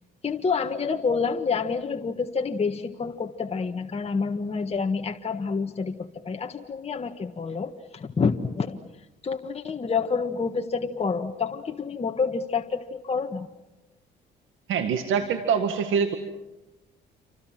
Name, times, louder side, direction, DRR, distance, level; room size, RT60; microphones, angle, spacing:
voice 1, 0.2-8.8 9.2-13.5, left 5 dB, 30° left, 4 dB, 1.6 m, -28 dB
voice 2, 14.7-16.2, right 6 dB, 80° right, 8 dB, 1.9 m, -24 dB
29.0 x 25.0 x 7.6 m, 0.99 s
cardioid pair, 90°, 20 cm